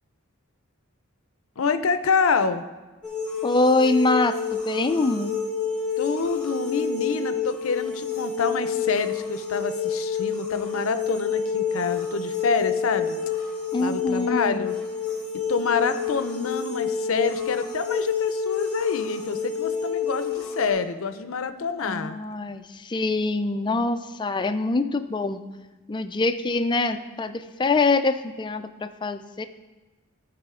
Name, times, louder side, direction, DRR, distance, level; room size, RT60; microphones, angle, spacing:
voice 1, 1.6-2.6 6.0-13.2 13.8-14.7 15.5-22.2, left 5 dB, 70° left, 11 dB, 0.6 m, -27 dB
sound 1, 3.0-20.7, left 6 dB, 5° left, 1.7 m, -29 dB
voice 2, 3.4-5.3 13.7-14.7 21.8-25.4 25.9-29.5, left 3 dB, 20° left, 9 dB, 0.4 m, -24 dB
14.5 x 4.9 x 3.7 m, 1.2 s
head